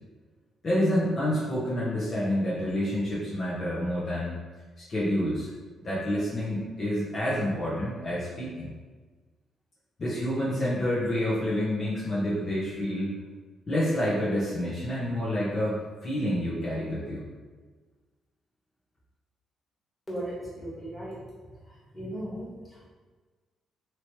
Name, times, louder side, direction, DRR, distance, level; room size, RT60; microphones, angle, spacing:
voice 1, 0.6-4.4 4.8-5.5 5.8-8.7 10.0-13.1 13.7-17.2, equal, 40° left, -8 dB, 0.9 m, -28 dB
voice 2, 20.1-21.2 21.9-22.9, right 1 dB, 15° left, -7 dB, 1.4 m, -37 dB
3.0 x 3.0 x 2.9 m, 1.4 s
cardioid pair, 90°, 0 cm